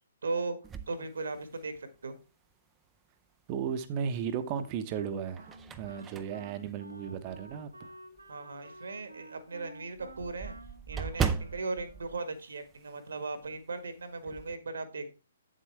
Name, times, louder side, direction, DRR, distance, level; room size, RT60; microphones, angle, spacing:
voice 1, 0.2-0.6 0.9-2.1 8.3-10.5 10.9-15.1, right 3 dB, 65° right, 1.5 m, -37 dB
sound 1, 0.6-2.0 2.5-2.6 4.1-4.6 5.1-7.7 8.2-8.3 8.7-8.8 9.0-9.1 9.4-13.2 13.4-13.7 14.0-14.6, right 6 dB, 15° right, 0.6 m, -38 dB
voice 2, 3.5-7.9, right 7 dB, 30° right, 1.0 m, -35 dB
Wind instrument woodwind instrument, 4.9-12.3, right 2 dB, 85° right, 1.3 m, -51 dB
8.6 x 7.5 x 3.3 m
figure-of-eight pair, 125°, 0 cm